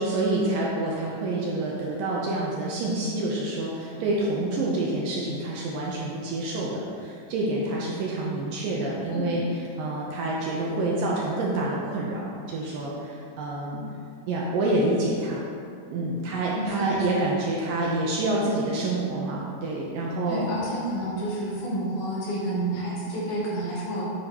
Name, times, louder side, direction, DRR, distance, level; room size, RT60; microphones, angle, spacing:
voice 1, 0.0-13.8 14.3-15.5 15.9-20.4, right 2 dB, 75° right, -4 dB, 2.2 m, -27 dB
voice 2, 16.5-17.2 20.3-24.0, right 1 dB, 80° left, -7 dB, 3.5 m, -30 dB
9.3 x 5.0 x 2.9 m, 2.3 s
omnidirectional pair, 4.3 m